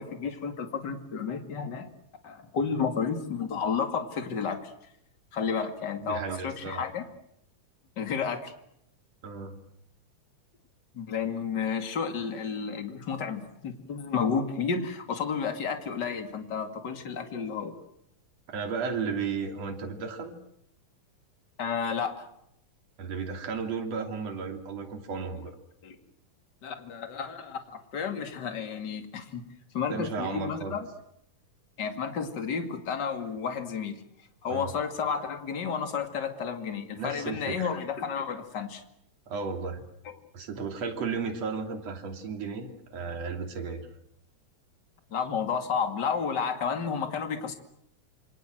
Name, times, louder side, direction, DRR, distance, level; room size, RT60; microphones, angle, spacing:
voice 1, 0.0-1.9 2.2-4.7 5.3-7.0 8.0-8.5 10.9-17.7 21.6-22.3 25.8-26.0 26.6-30.9 31.8-34.0 34.4-38.8 40.0-40.2 45.1-47.5, left 6 dB, 35° left, 7 dB, 2.6 m, -31 dB
voice 2, 6.0-6.8 9.2-9.6 18.5-20.4 23.0-25.6 29.9-30.8 34.5-34.7 37.0-37.7 39.3-39.8 40.3-43.9, right 5 dB, 55° right, 4 dB, 4.0 m, -34 dB
27.5 x 25.0 x 7.8 m, 0.74 s
omnidirectional pair, 3.7 m